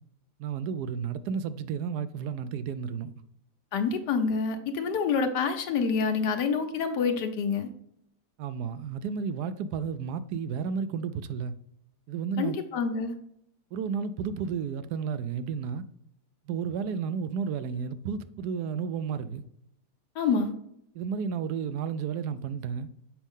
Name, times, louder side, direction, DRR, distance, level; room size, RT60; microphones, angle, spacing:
voice 1, 0.4-3.1 8.4-11.5 12.1-12.6 13.7-15.8 16.5-19.4 20.9-22.9, right 6 dB, 75° right, 1.1 m, -32 dB
voice 2, 3.7-7.7 12.4-13.2 20.2-20.5, left 5 dB, 80° left, 1.4 m, -27 dB
7.2 x 5.3 x 3.6 m
omnidirectional pair, 1.8 m